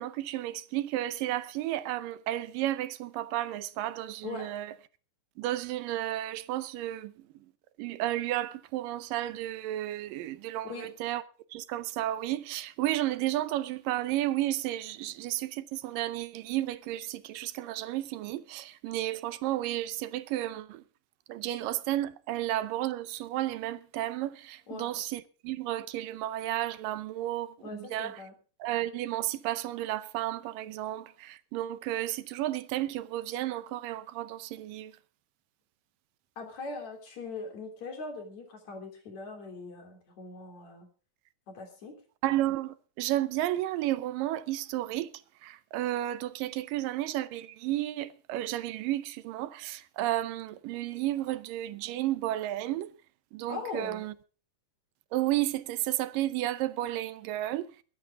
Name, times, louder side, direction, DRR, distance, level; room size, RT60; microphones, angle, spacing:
voice 1, 0.0-4.7 5.4-7.3 7.8-11.2 11.5-20.8 21.3-28.2 28.6-34.9 42.2-45.1 45.4-52.9 53.3-54.1 55.1-57.7, right 14 dB, 80° right, 2.4 m, -32 dB
voice 2, 24.7-25.0 27.6-28.3 36.4-40.9 41.5-41.9 53.5-54.0, left 4 dB, 55° left, 4.5 m, -41 dB
22.5 x 10.5 x 3.6 m
omnidirectional pair, 3.9 m